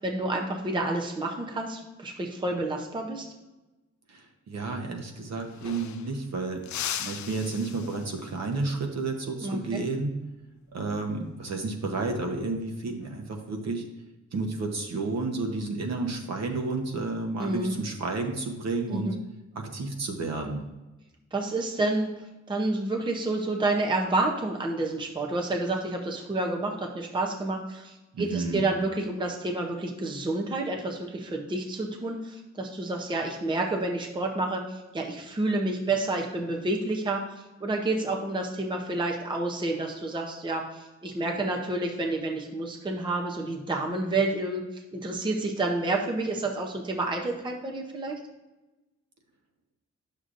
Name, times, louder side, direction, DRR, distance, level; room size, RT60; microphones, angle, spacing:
voice 1, 0.0-3.3 9.4-9.8 17.4-17.7 18.9-19.2 21.3-22.2 22.5-37.3 37.6-48.2, right 2 dB, 15° right, 1 dB, 0.6 m, -29 dB
voice 2, 4.1-6.6 7.0-10.1 10.7-13.8 14.3-19.2 19.5-20.6 28.1-28.6, right 3 dB, 60° right, 3 dB, 1.0 m, -31 dB
sound 1, 5.0-5.1 5.3-6.2 6.6-8.4 10.9-11.2 12.6-13.1, left 9 dB, 70° left, 0.5 m, -38 dB
9.6 x 6.6 x 2.5 m, 1.1 s
wide cardioid pair, 180°, 30 cm